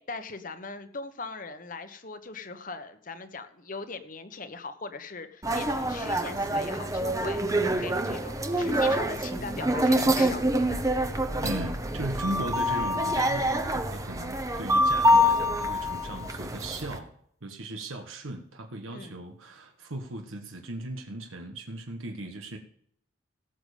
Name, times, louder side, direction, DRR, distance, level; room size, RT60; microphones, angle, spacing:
voice 1, 0.0-10.4 18.9-19.2, left 3 dB, 40° left, 9 dB, 1.1 m, -40 dB
sound 1, 5.4-17.0, equal, 15° right, 1.0 m, -26 dB
voice 2, 11.4-17.1 17.4-22.6, right 1 dB, 90° right, 3 dB, 1.5 m, -37 dB
17.0 x 7.1 x 5.1 m, 0.66 s
head